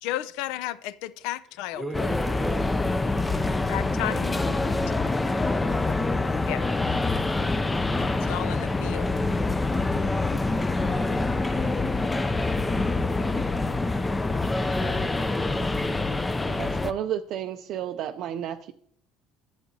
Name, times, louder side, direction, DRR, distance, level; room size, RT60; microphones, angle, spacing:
voice 1, 0.0-2.2 3.7-4.6 6.5-6.7 8.3-9.1, left 14 dB, 85° left, 0.4 m, -33 dB
voice 2, 1.7-4.9 10.2-10.5 11.5-12.7, right 1 dB, 5° right, 1.0 m, -40 dB
sound 1, 1.9-16.9, left 2 dB, 15° left, 0.4 m, -26 dB
voice 3, 16.5-18.7, right 10 dB, 55° right, 0.4 m, -32 dB
11.0 x 7.4 x 2.7 m
cardioid pair, 130°, 0 cm